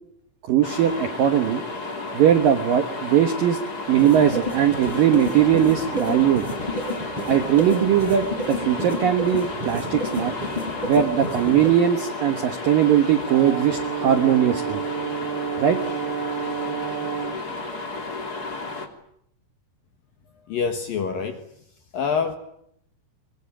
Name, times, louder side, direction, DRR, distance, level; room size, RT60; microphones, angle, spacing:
voice 1, 0.5-1.6 2.1-3.6 3.9-6.4 7.3-10.3 10.9-14.8 15.6-15.8, right 10 dB, 70° right, 7 dB, 2.1 m, -20 dB
sound 1, 0.6-18.9, left 3 dB, 25° left, 2.4 m, -33 dB
sound 2, 4.0-11.7, left 1 dB, 10° right, 5.1 m, -31 dB
Brass instrument, 13.3-17.4, right 8 dB, 55° right, 3.8 m, -30 dB
voice 2, 20.5-21.5 21.9-22.4, left 6 dB, 65° left, 7 dB, 2.4 m, -26 dB
24.5 x 22.5 x 8.9 m, 0.73 s
omnidirectional pair, 5.9 m